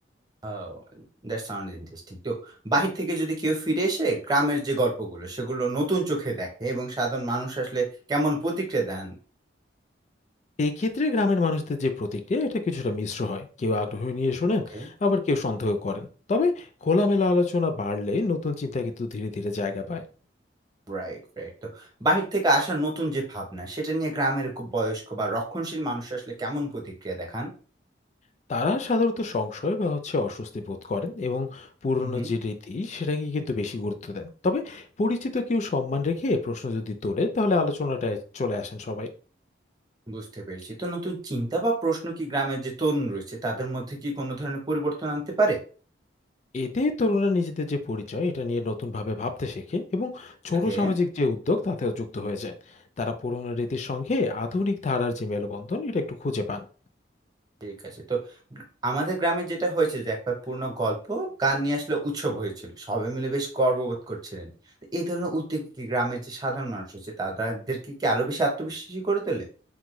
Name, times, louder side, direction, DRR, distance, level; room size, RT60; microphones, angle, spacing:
voice 1, 0.4-0.8 1.2-9.1 14.7-14.9 20.9-27.5 32.0-32.3 40.1-45.6 50.6-50.9 57.6-58.2 58.5-64.5 64.9-66.8 67.2-69.4, right 2 dB, 20° right, 0 dB, 0.7 m, -28 dB
voice 2, 10.6-20.0 28.5-39.1 46.5-52.5 53.0-56.7, left 3 dB, 40° left, 7 dB, 0.3 m, -27 dB
3.5 x 2.1 x 3.0 m, 0.38 s
head